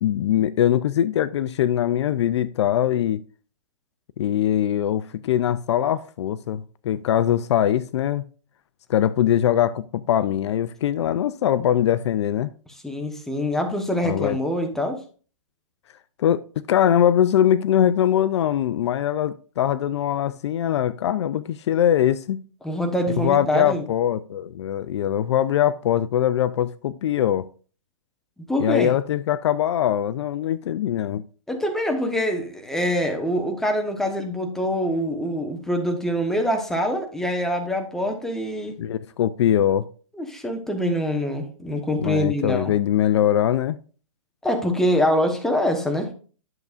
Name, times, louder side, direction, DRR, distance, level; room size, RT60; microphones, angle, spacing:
voice 1, 0.0-3.2 4.2-8.3 8.9-12.5 14.0-14.4 16.2-16.4 16.7-22.4 23.2-27.5 28.6-31.2 38.8-39.9 42.0-43.8, left 10 dB, 55° left, 0.4 m, -22 dB
voice 2, 12.8-15.0 22.6-23.8 28.5-28.9 31.5-38.8 40.2-42.7 44.4-46.1, equal, ahead, 1.0 m, -24 dB
10.5 x 6.8 x 2.5 m
hypercardioid pair, 150°, 17 cm